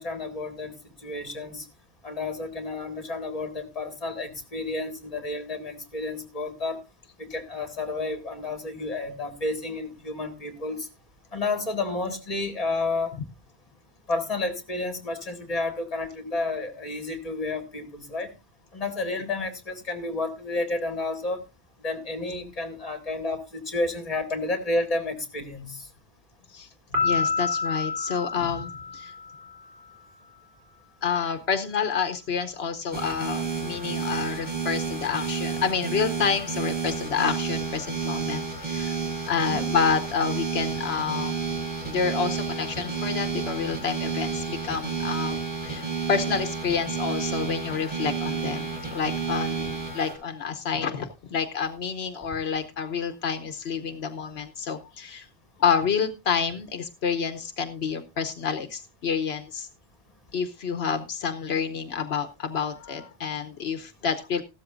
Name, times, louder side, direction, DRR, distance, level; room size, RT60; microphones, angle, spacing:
voice 1, 0.0-1.7 2.0-6.8 7.2-10.9 11.3-13.1 14.1-18.3 18.7-21.4 21.8-25.9 39.3-39.7, left 2 dB, 35° left, 7 dB, 2.0 m, -31 dB
Piano, 26.9-29.5, left 4 dB, 55° right, 3.4 m, -28 dB
voice 2, 27.0-29.1 31.0-39.0 39.3-41.3 41.8-45.4 45.6-55.3 55.6-59.7 60.3-64.4, left 6 dB, 85° left, 7 dB, 1.1 m, -28 dB
sound 1, 32.9-50.1, right 5 dB, 10° right, 4.8 m, -31 dB
15.0 x 13.0 x 2.5 m, 0.25 s
omnidirectional pair, 1.0 m